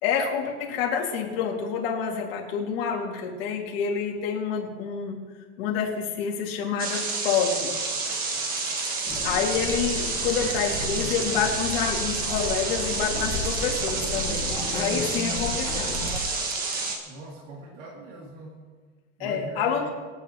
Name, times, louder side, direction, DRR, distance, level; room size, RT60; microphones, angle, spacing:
voice 1, 0.0-5.2 5.6-7.7 9.2-16.1 19.2-19.9, left 7 dB, 50° left, -1 dB, 2.9 m, -28 dB
sound 1, 6.8-17.0, right 3 dB, 25° right, 1.5 m, -29 dB
sound 2, 9.1-16.2, left 2 dB, 5° left, 1.3 m, -34 dB
voice 2, 17.0-18.6 19.2-19.9, right 2 dB, 75° right, -3 dB, 3.3 m, -41 dB
25.5 x 9.0 x 3.2 m, 1.5 s
supercardioid pair, 170°, 36 cm